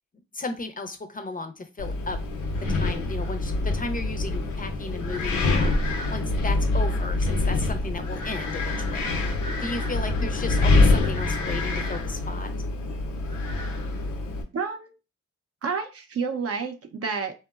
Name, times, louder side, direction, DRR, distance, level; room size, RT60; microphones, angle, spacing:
voice 1, 0.3-2.2 2.7-5.7 6.1-9.1 9.6-12.5, left 3 dB, 30° left, 8 dB, 0.5 m, -34 dB
Wind, 1.8-14.4, left 2 dB, 80° left, 0.6 m, -25 dB
voice 2, 14.5-14.9 15.6-17.3, right 5 dB, 55° right, 6 dB, 0.6 m, -29 dB
2.8 x 2.1 x 2.2 m, 0.29 s
supercardioid pair, 50°, 29 cm